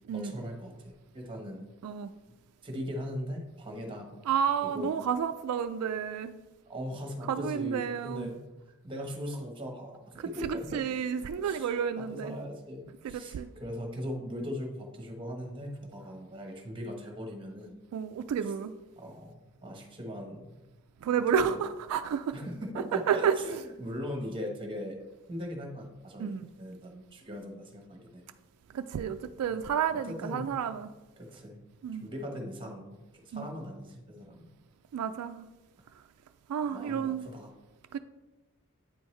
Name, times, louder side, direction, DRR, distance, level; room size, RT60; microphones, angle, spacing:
voice 1, 0.1-1.6 2.6-4.2 4.6-4.9 6.7-8.5 8.8-10.9 11.4-17.8 19.0-20.6 21.4-21.6 22.3-25.0 25.3-28.2 29.9-30.5 31.2-31.6 32.0-33.0 33.2-34.5 36.7-37.5, equal, 25° right, 1.1 m, -39 dB
voice 2, 4.3-6.4 7.3-8.3 10.2-12.4 13.0-13.5 17.9-18.7 21.0-22.3 22.9-23.6 26.2-26.4 28.7-30.9 31.8-32.1 33.3-33.5 34.9-35.5 36.5-37.3 37.9-38.0, right 7 dB, 80° right, 0.3 m, -31 dB
8.8 x 4.5 x 3.2 m
head